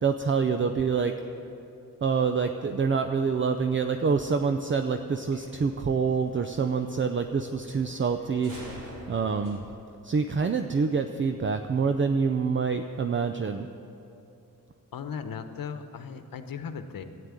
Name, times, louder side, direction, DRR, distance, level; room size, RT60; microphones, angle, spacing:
voice 1, 0.0-1.2 2.0-9.6 10.0-13.7, right 5 dB, 35° right, 7 dB, 0.6 m, -26 dB
sound 1, 3.3-9.6, right 1 dB, 65° right, 3.4 m, -49 dB
voice 2, 14.9-17.0, left 6 dB, 85° left, 8 dB, 1.0 m, -37 dB
13.0 x 9.4 x 9.7 m, 2.7 s
wide cardioid pair, 115°, 34 cm